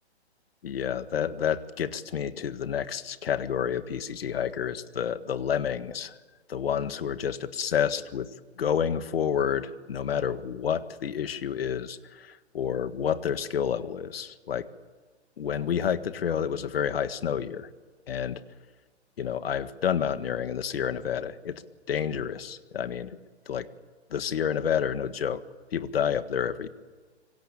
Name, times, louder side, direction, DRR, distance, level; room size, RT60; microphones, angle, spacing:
voice 1, 0.6-6.1 6.5-8.3 8.6-14.7 15.4-17.7 18.1-18.4 19.2-21.6 21.9-23.2 23.5-23.7 24.1-25.4 25.7-26.7, left 8 dB, 60° left, 12 dB, 1.8 m, -29 dB
26.5 x 24.5 x 8.7 m, 1.3 s
hypercardioid pair, 160°, 34 cm